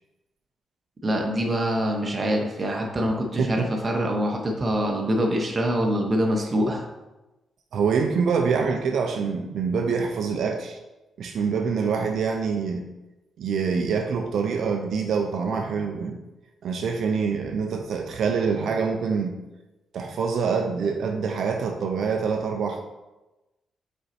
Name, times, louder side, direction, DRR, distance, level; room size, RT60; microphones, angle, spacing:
voice 1, 1.0-6.8, equal, 20° right, 1 dB, 0.8 m, -24 dB
voice 2, 3.4-3.7 7.7-10.8 11.2-12.9 13.4-16.2 16.6-19.4 19.9-22.8, right 5 dB, 60° right, 4 dB, 0.5 m, -25 dB
5.3 x 4.4 x 4.3 m, 1.0 s
wide cardioid pair, 180°, 0 cm